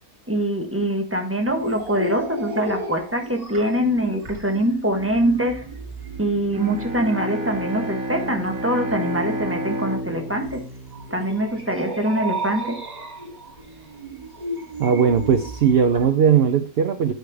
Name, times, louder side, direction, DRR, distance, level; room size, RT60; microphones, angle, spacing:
voice 1, 0.3-5.6 6.2-10.6 11.1-12.8, right 1 dB, 10° right, 4 dB, 0.8 m, -23 dB
sound 1, 1.5-16.1, right 1 dB, 30° right, 1.5 m, -35 dB
Bowed string instrument, 6.5-11.8, right 1 dB, 85° right, 1.6 m, -30 dB
voice 2, 14.8-17.1, right 7 dB, 60° right, 7 dB, 0.6 m, -18 dB
9.2 x 4.9 x 3.4 m, 0.41 s
omnidirectional pair, 1.5 m